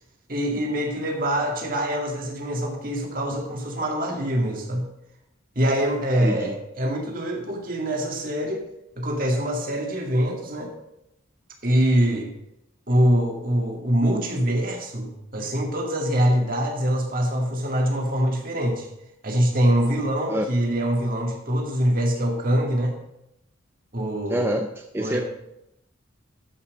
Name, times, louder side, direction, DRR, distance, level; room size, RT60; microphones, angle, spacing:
voice 1, 0.3-4.9 5.6-8.7 9.0-10.7 11.6-12.3 12.9-18.9 19.2-22.9 23.9-24.6 25.0-25.2, equal, 45° right, 1 dB, 2.1 m, -24 dB
voice 2, 6.2-6.5 20.3-20.5 24.3-25.2, right 1 dB, 10° right, 4 dB, 0.5 m, -26 dB
12.5 x 5.9 x 5.2 m, 0.82 s
head